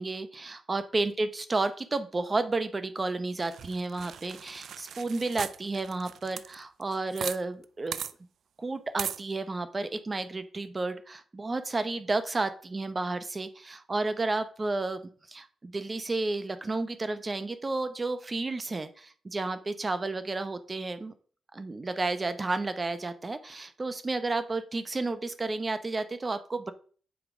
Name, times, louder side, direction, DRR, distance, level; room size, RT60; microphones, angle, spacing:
voice 1, 0.0-8.0 8.6-15.0 15.3-21.1 21.5-26.7, right 3 dB, 30° right, 11 dB, 0.8 m, -32 dB
sound 1, 3.4-7.4 7.6-7.7 7.9-8.1 9.0-9.2, right 8 dB, 70° right, 0.3 m, -38 dB
7.2 x 4.7 x 3.6 m, 0.43 s
cardioid pair, 75°, 0 cm